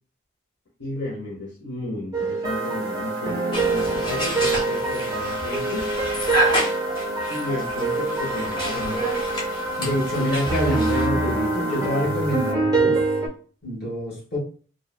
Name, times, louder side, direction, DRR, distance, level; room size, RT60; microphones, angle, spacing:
voice 1, 0.8-5.9 7.3-9.0, left 1 dB, 70° left, -4 dB, 0.6 m, -33 dB
sound 1, 2.1-13.3, right 3 dB, 20° right, 0.4 m, -26 dB
sound 2, 2.4-12.5, equal, 80° right, 0.5 m, -31 dB
sound 3, 3.5-11.1, equal, 20° left, 0.7 m, -30 dB
voice 2, 9.8-13.0 13.6-14.4, equal, 50° left, -3 dB, 1.2 m, -26 dB
2.9 x 2.1 x 2.2 m, 0.41 s
head